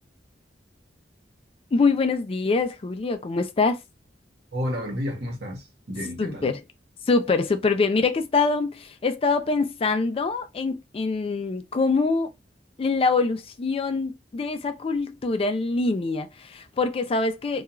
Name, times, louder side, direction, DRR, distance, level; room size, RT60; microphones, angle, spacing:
voice 1, 1.7-3.8 6.2-6.6 7.1-12.3 12.8-17.6, left 4 dB, 35° left, 0.4 m, -24 dB
voice 2, 4.5-6.5, equal, 65° right, 1.0 m, -31 dB
2.3 x 2.3 x 2.9 m
head